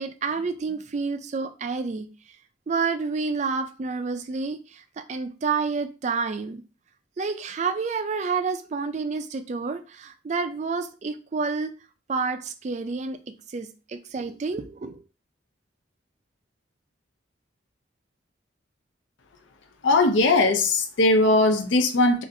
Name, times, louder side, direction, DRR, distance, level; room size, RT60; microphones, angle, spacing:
voice 1, 0.0-2.1 2.7-6.6 7.2-11.8 12.1-15.0, right 4 dB, 35° right, 0.3 m, -29 dB
voice 2, 19.8-22.2, left 2 dB, 70° left, 0.5 m, -19 dB
3.8 x 2.5 x 2.6 m
head